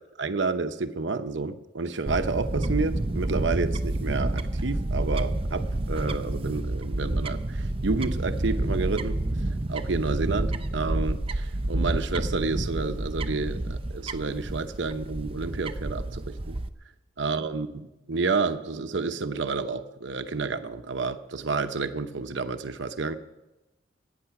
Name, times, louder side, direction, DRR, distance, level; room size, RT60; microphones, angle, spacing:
voice 1, 0.2-9.2 9.7-16.6 17.2-23.1, right 4 dB, 75° right, 8 dB, 0.9 m, -30 dB
Fowl / Bird, 2.1-16.7, right 1 dB, 30° right, 0.6 m, -29 dB
23.5 x 9.2 x 5.9 m, 1.0 s
head